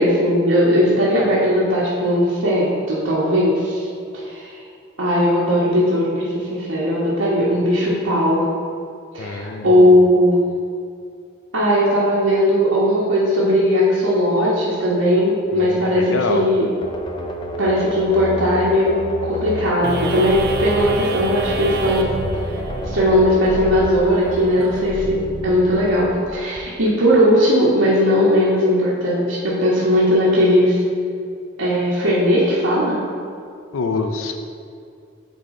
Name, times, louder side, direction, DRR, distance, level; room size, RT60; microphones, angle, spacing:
voice 1, 0.0-3.9 4.2-4.5 5.0-8.5 9.1-10.4 11.5-16.7 17.6-19.0 19.2-22.2 22.8-30.8 31.6-33.0, equal, 80° right, -8 dB, 1.2 m, -18 dB
voice 2, 9.2-9.7 15.5-16.4 33.7-34.4, left 4 dB, 85° left, 6 dB, 0.5 m, -25 dB
sound 1, 16.8-25.5, left 1 dB, 25° left, 0.4 m, -31 dB
sound 2, 19.8-26.6, right 2 dB, 50° right, 0.5 m, -29 dB
8.4 x 4.1 x 3.7 m, 2.4 s
head